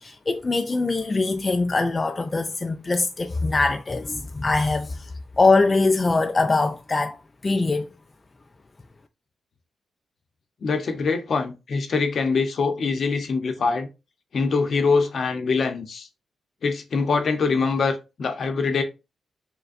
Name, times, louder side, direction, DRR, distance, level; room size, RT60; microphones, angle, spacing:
voice 1, 0.0-5.1 5.4-7.2 7.4-7.9, left 3 dB, 30° left, 0.4 m, -22 dB
voice 2, 10.6-13.9 14.3-16.1 16.6-18.8, left 4 dB, 60° left, 0.8 m, -23 dB
6.7 x 2.3 x 2.5 m
cardioid pair, 80°, 0 cm